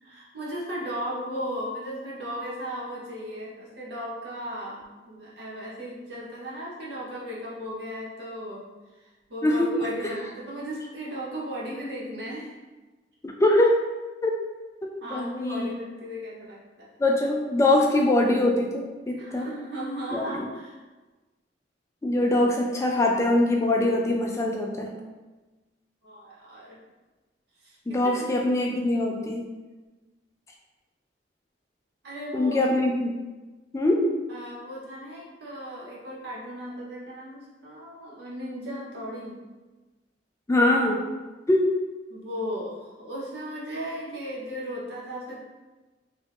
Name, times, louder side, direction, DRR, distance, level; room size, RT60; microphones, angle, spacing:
voice 1, 0.0-12.6 15.0-16.9 19.2-20.8 26.0-26.8 27.6-27.8 28.0-28.3 32.0-32.6 34.3-39.4 42.1-45.4, equal, 70° right, -5 dB, 0.9 m, -36 dB
voice 2, 9.4-9.8 13.2-13.8 14.2-14.3 14.8-15.7 17.0-19.5 20.1-20.4 22.0-25.0 27.9-29.5 32.3-33.2 33.7-34.1 40.5-41.0 41.5-41.7, left 1 dB, 15° left, 0 dB, 0.3 m, -23 dB
2.9 x 2.5 x 3.4 m, 1.2 s
head